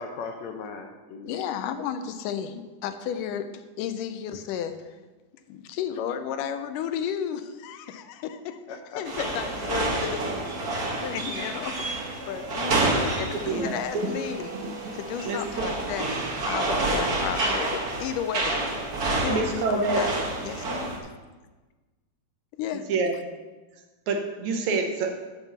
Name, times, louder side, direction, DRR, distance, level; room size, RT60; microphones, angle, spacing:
voice 1, 0.0-1.4 8.7-10.1, left 4 dB, 75° left, 4 dB, 1.8 m, -39 dB
voice 2, 1.3-4.9 5.5-8.6 9.0-10.2 10.7-11.9 12.3-14.6 14.9-18.8 19.2-21.1 22.6-22.9, left 8 dB, 90° left, 9 dB, 2.3 m, -33 dB
sound 1, 9.1-21.0, right 2 dB, 50° right, 1.1 m, -29 dB
voice 3, 13.5-14.1 14.6-14.7 15.2-15.7 19.3-20.1 22.9-23.2 24.1-25.2, right 3 dB, 70° right, 3 dB, 2.1 m, -27 dB
11.5 x 4.5 x 6.8 m, 1.2 s
omnidirectional pair, 3.6 m